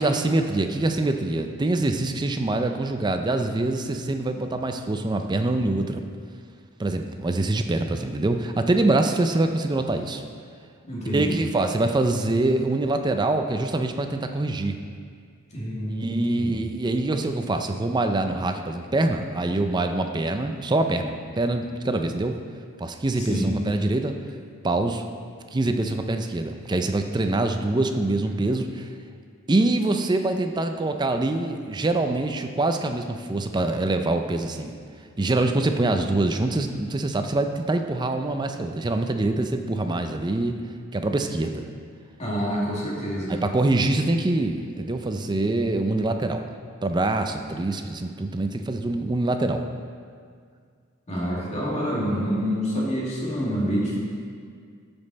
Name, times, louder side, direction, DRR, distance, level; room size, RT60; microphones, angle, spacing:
voice 1, 0.0-6.0 6.8-10.2 11.1-14.8 16.0-22.4 22.8-24.2 24.6-25.0 25.5-28.9 29.5-34.7 35.2-40.6 40.9-41.6 43.3-46.5 46.8-49.7, right 2 dB, 20° right, 6 dB, 0.4 m, -24 dB
voice 2, 10.9-11.4 15.5-16.5 23.2-23.5 42.2-43.4 51.1-54.0, equal, 30° left, -5 dB, 2.1 m, -27 dB
13.5 x 5.3 x 4.1 m, 2.1 s
head